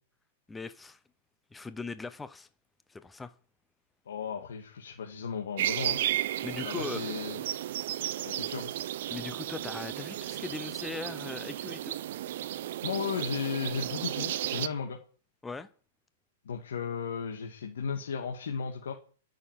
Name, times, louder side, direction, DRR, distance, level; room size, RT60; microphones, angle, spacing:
voice 1, 0.5-1.0 1.5-2.5 2.9-3.3 6.4-7.1 9.1-12.0 15.4-15.7, left 4 dB, 5° left, 0.6 m, -39 dB
voice 2, 4.1-6.0 6.6-7.4 8.2-8.7 12.8-15.0 16.4-18.9, left 6 dB, 85° left, 2.2 m, -35 dB
sound 1, 5.6-14.7, right 13 dB, 60° right, 0.7 m, -34 dB
12.5 x 6.5 x 7.5 m
hypercardioid pair, 155°, 0 cm